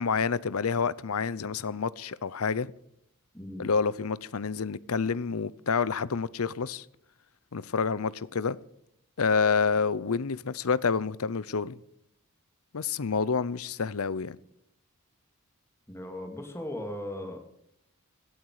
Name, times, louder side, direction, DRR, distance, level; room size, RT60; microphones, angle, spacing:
voice 1, 0.0-2.7 3.6-6.8 7.5-8.6 9.2-11.8 12.7-14.4, left 5 dB, 70° left, 0.7 m, -28 dB
voice 2, 3.3-3.7 15.9-17.4, left 1 dB, 10° left, 2.6 m, -37 dB
17.0 x 13.0 x 4.9 m
head